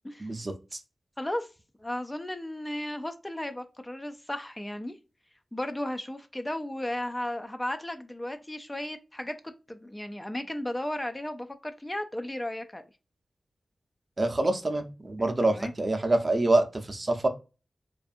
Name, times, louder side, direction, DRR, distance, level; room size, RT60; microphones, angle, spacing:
voice 1, 0.2-0.8 14.2-17.3, right 2 dB, 40° right, 7 dB, 0.5 m, -26 dB
voice 2, 1.2-1.5 1.8-5.0 5.5-9.4 9.7-12.8 15.2-15.7, left 1 dB, 20° left, 7 dB, 0.3 m, -35 dB
2.5 x 2.4 x 2.5 m, 0.30 s
cardioid pair, 45°, 0 cm